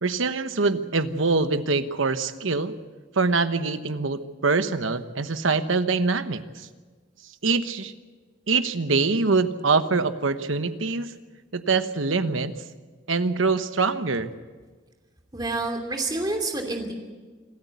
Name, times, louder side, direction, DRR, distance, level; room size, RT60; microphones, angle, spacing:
voice 1, 0.0-2.7 3.2-6.7 7.4-7.9 8.5-11.1 11.5-12.6 13.1-14.3, right 4 dB, 90° right, 10 dB, 1.1 m, -24 dB
voice 2, 15.3-16.9, right 2 dB, 20° right, 3 dB, 2.8 m, -28 dB
26.5 x 13.5 x 8.3 m, 1.4 s
head